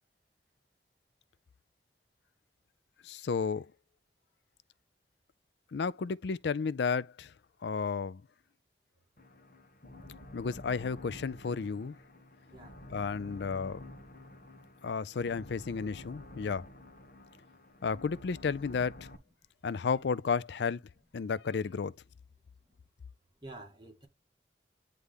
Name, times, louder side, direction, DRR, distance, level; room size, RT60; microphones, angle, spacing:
voice 1, 3.0-3.7 5.7-7.3 7.6-8.2 10.3-12.0 12.9-13.8 14.8-16.7 17.8-19.1 19.6-20.8 21.1-21.9, left 5 dB, 80° left, 0.4 m, -32 dB
sound 1, 9.2-19.2, left 1 dB, 50° left, 1.4 m, -50 dB
voice 2, 12.5-12.8 22.7-22.8 23.4-24.1, right 2 dB, 25° right, 2.2 m, -49 dB
9.6 x 3.3 x 3.6 m
head